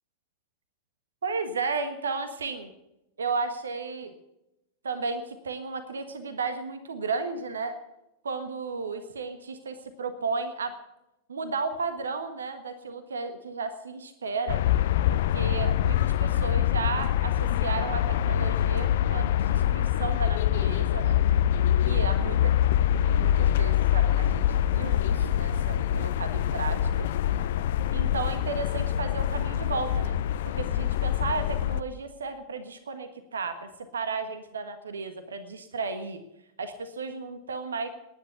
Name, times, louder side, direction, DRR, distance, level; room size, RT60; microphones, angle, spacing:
voice 1, 1.2-2.7 3.2-4.1 4.8-7.8 8.2-10.7 11.3-14.6 15.1-21.2 21.8-22.5 22.9-27.1 27.9-30.2 30.5-36.2 36.6-37.9, right 4 dB, 70° right, 10 dB, 1.4 m, -34 dB
sound 1, 14.5-31.8, left 11 dB, 55° left, 0.6 m, -25 dB
19.0 x 10.5 x 6.9 m, 0.90 s
figure-of-eight pair, 90°, 0 cm